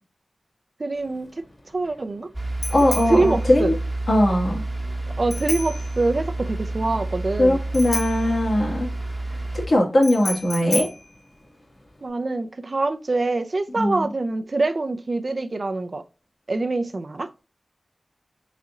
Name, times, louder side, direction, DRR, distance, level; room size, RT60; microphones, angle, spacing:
voice 1, 0.8-1.3 1.7-2.3 3.1-3.8 5.2-7.6 12.0-16.0 16.5-17.3, right 3 dB, 55° right, 0.5 m, -24 dB
Bicycle bell, 0.9-12.1, left 2 dB, 50° left, 1.5 m, -35 dB
sound 1, 2.3-9.7, right 2 dB, 35° right, 0.9 m, -29 dB
voice 2, 2.7-3.7 4.1-4.6 7.4-8.9 9.3-9.4 9.7-10.9 13.8-14.1, left 1 dB, 75° left, 1.8 m, -20 dB
4.1 x 4.1 x 2.4 m
wide cardioid pair, 60°, 0 cm